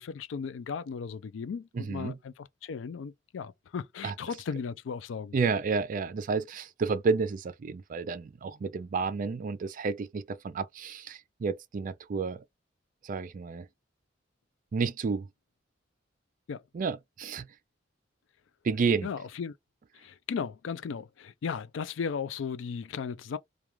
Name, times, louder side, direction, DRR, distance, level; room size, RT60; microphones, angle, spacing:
voice 1, 0.0-5.4 16.5-16.6 19.0-19.5 19.9-23.4, left 6 dB, 75° left, 0.4 m, -36 dB
voice 2, 1.7-2.2 4.0-4.1 5.3-12.4 13.0-13.7 14.7-15.3 16.7-17.5 18.6-19.1, right 4 dB, 45° right, 0.3 m, -31 dB
2.3 x 2.3 x 3.0 m
head